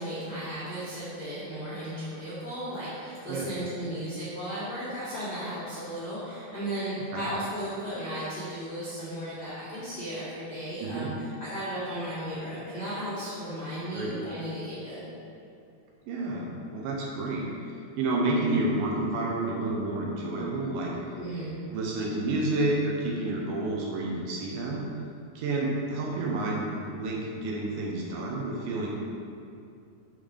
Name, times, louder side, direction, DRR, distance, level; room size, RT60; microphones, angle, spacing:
voice 1, 0.0-11.1 11.4-15.0 21.2-21.5, right 1 dB, 70° left, -11 dB, 0.9 m, -35 dB
voice 2, 10.8-11.1 13.9-14.1 16.1-17.4 18.0-20.9 21.7-24.8 25.4-28.9, right 2 dB, 75° right, -3 dB, 2.3 m, -29 dB
6.3 x 3.8 x 5.0 m, 2.5 s
omnidirectional pair, 4.3 m